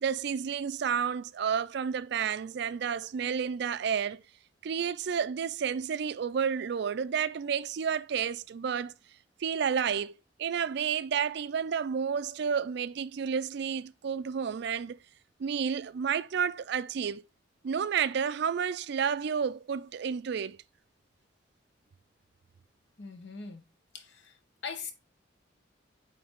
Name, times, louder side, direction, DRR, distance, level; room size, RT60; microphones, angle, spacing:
voice 1, 0.0-4.2 4.6-8.9 9.4-10.1 10.4-15.0 15.4-17.2 17.6-20.6, right 7 dB, 65° right, 0.4 m, -31 dB
voice 2, 23.0-23.7 23.9-24.4 24.6-24.9, left 5 dB, 70° left, 1.1 m, -41 dB
8.6 x 3.3 x 3.5 m
head